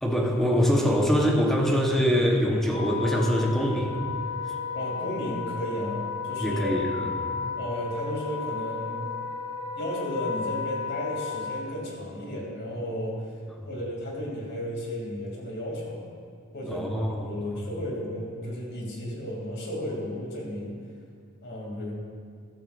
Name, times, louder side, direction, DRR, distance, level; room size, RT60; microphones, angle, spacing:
voice 1, 0.0-3.9 6.4-7.3 16.7-17.5, equal, ahead, -1 dB, 1.1 m, -24 dB
Wind instrument woodwind instrument, 2.6-11.6, left 6 dB, 30° left, 1.9 m, -34 dB
voice 2, 4.7-6.8 7.6-9.1 9.7-13.2 13.6-16.0 16.5-16.9 17.2-20.8 21.4-21.9, equal, 55° left, -2 dB, 2.8 m, -33 dB
15.0 x 12.5 x 2.6 m, 2.2 s
head